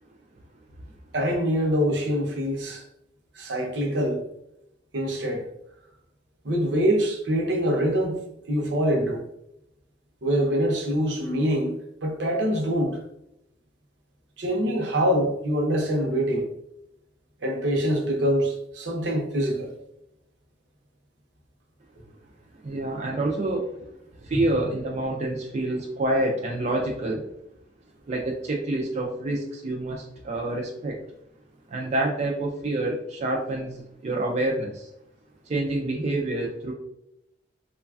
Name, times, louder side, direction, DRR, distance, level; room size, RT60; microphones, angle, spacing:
voice 1, 1.1-2.8 3.4-4.2 4.9-5.5 6.4-8.2 8.5-9.2 10.2-13.0 14.4-16.5 17.4-19.7 24.3-24.4, equal, 75° right, 0.7 m, -24 dB
voice 2, 22.6-23.9 24.2-27.2 28.1-31.0 31.7-34.9 35.5-36.7, right 2 dB, 40° right, 0.3 m, -27 dB
3.1 x 2.3 x 2.3 m
head